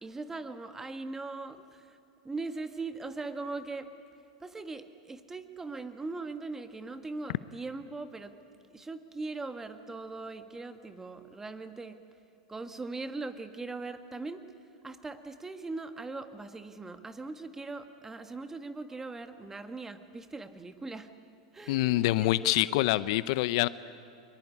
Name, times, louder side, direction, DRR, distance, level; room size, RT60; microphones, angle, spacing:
voice 1, 0.0-2.0 2.2-3.9 4.4-8.3 8.7-12.0 12.5-14.4 14.8-21.1 21.5-22.8, right 3 dB, 10° right, 9 dB, 1.7 m, -40 dB
voice 2, 21.7-23.7, left 17 dB, 60° left, 17 dB, 0.6 m, -26 dB
23.0 x 22.5 x 9.8 m, 2.5 s
hypercardioid pair, 105°, 3 cm